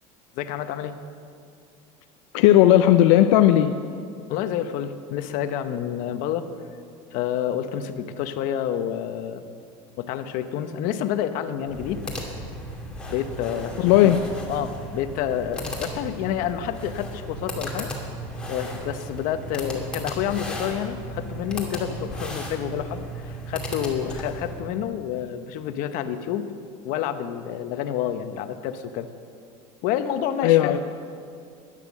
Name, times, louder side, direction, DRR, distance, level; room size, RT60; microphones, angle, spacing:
voice 1, 0.3-1.0 4.3-6.5 7.1-9.4 10.0-12.1 13.1-14.1 14.5-17.9 18.5-26.5 26.8-29.1 29.8-30.8, left 10 dB, 60° left, 9 dB, 0.9 m, -29 dB
voice 2, 2.3-3.7 13.8-14.2 30.4-30.8, left 13 dB, 85° left, 7 dB, 0.6 m, -16 dB
sound 1, 11.6-24.6, equal, 5° left, 2.4 m, -35 dB
12.0 x 10.5 x 7.3 m, 2.3 s
supercardioid pair, 135°, 15 cm